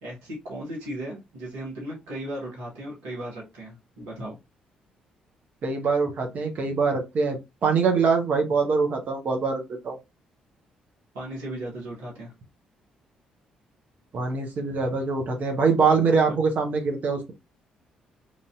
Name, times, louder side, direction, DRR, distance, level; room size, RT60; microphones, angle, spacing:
voice 1, 0.0-4.4 11.1-12.3 16.3-16.4, right 1 dB, 75° right, -4 dB, 1.4 m, -36 dB
voice 2, 5.6-10.0 14.1-17.3, right 5 dB, 55° right, 4 dB, 0.7 m, -24 dB
3.0 x 2.6 x 2.3 m, 0.23 s
hypercardioid pair, 45°, 3 cm